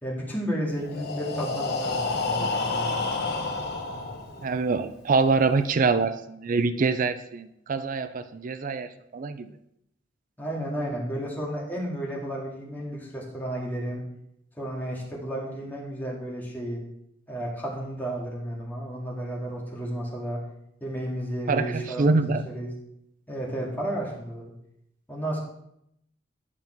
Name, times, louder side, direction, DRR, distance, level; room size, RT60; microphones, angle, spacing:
voice 1, 0.0-3.0 10.4-14.0 14.6-16.8 17.3-20.4 20.8-22.7 23.3-24.5 25.1-25.4, right 1 dB, 10° left, -4 dB, 2.0 m, -32 dB
Breathing, 0.8-4.7, left 3 dB, 60° left, 1.1 m, -29 dB
voice 2, 4.4-8.9 9.1-9.5 21.5-22.4, right 4 dB, 45° right, 11 dB, 0.4 m, -25 dB
9.9 x 5.5 x 4.5 m, 0.79 s
head